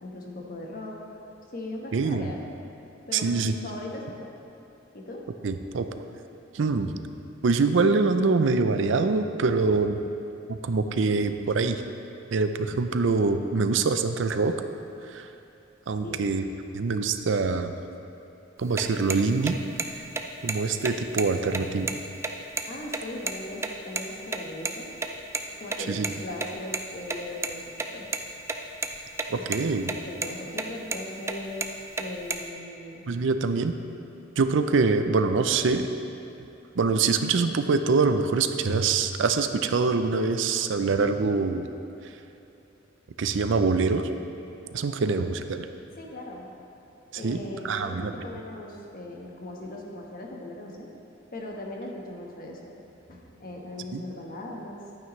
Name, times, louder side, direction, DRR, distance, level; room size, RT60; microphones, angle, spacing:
voice 1, 0.0-1.0 1.5-2.4 3.1-4.3 4.9-5.2 16.0-16.3 22.7-24.9 25.6-28.1 29.4-29.6 30.0-31.6 32.0-33.0 46.0-46.5 47.2-50.9 51.3-52.7 53.1-54.8, left 1 dB, 50° left, -1 dB, 1.2 m, -39 dB
voice 2, 1.9-2.3 3.1-3.5 5.4-5.9 6.5-6.9 7.4-10.0 10.5-11.8 12.3-14.6 15.1-15.3 15.9-16.4 16.7-17.8 18.6-19.6 20.4-21.9 25.9-26.1 29.3-29.9 33.1-33.7 34.4-35.9 36.8-41.7 43.2-44.1 44.7-45.7 47.2-48.1 53.9-54.0, right 4 dB, 70° right, 9 dB, 0.5 m, -24 dB
sound 1, 18.6-23.7 24.0-24.1 24.3-24.4 24.7-24.8 25.0-25.1 25.3-25.4 25.7-26.8 27.1-27.5 27.8-28.6 28.8-29.3 29.5-30.0 30.2-30.3 30.6-31.0 31.3-32.5, right 3 dB, 15° right, 0.4 m, -30 dB
11.5 x 9.2 x 3.1 m, 2.8 s
head